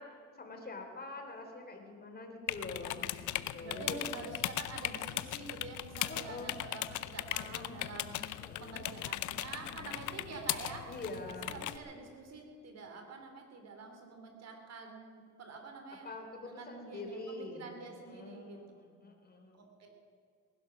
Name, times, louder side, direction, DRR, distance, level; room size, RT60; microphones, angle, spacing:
voice 1, 0.0-3.1 3.5-4.1 6.1-6.6 7.4-7.8 8.4-8.8 9.6-10.0 10.9-11.5 16.0-19.6, left 2 dB, 30° left, 3 dB, 3.3 m, -45 dB
sound 1, 2.5-11.8, left 14 dB, 75° left, 0.7 m, -38 dB
voice 2, 3.6-10.9 11.3-16.1 16.4-18.6 19.5-19.9, right 3 dB, 55° right, 4 dB, 3.2 m, -47 dB
20.0 x 11.5 x 6.0 m, 2.3 s
cardioid pair, 90°, 30 cm